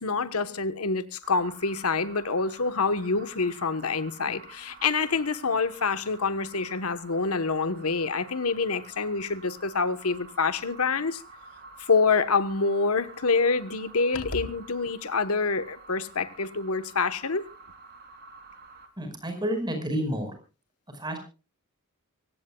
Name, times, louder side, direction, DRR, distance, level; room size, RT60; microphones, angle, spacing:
voice 1, 0.0-11.2 11.8-17.4, left 4 dB, 75° left, 1.2 m, -26 dB
sound 1, 1.2-18.9, right 4 dB, 45° right, 3.4 m, -49 dB
voice 2, 19.0-20.3 20.9-21.2, equal, 20° right, 5.1 m, -30 dB
25.0 x 16.0 x 2.3 m
head